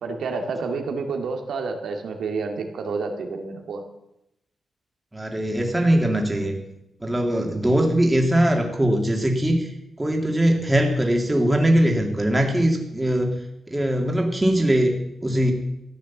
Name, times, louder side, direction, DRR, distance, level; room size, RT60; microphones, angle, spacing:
voice 1, 0.0-3.8, right 4 dB, 90° right, 4 dB, 2.1 m, -29 dB
voice 2, 5.1-6.5 7.0-13.4 13.7-15.5, right 1 dB, 10° right, 2 dB, 2.3 m, -21 dB
14.0 x 9.5 x 7.2 m, 0.86 s
wide cardioid pair, 140°, 0 cm